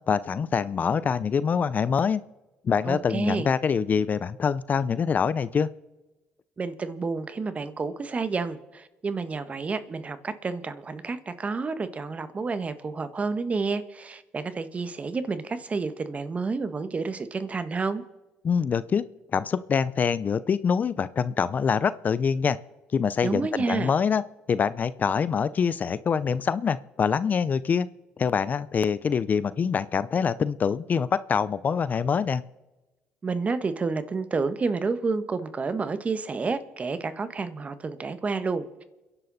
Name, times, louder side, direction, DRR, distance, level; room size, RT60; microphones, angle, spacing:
voice 1, 0.0-2.2 2.6-5.7 18.4-19.1 19.3-22.6 22.9-24.2 24.5-27.9 28.2-32.4, left 6 dB, 40° left, 0.6 m, -25 dB
voice 2, 2.9-3.5 6.6-18.0 23.2-23.9 33.2-38.8, right 4 dB, 35° right, 1.5 m, -30 dB
29.5 x 11.0 x 4.2 m
supercardioid pair, 80°, 4 cm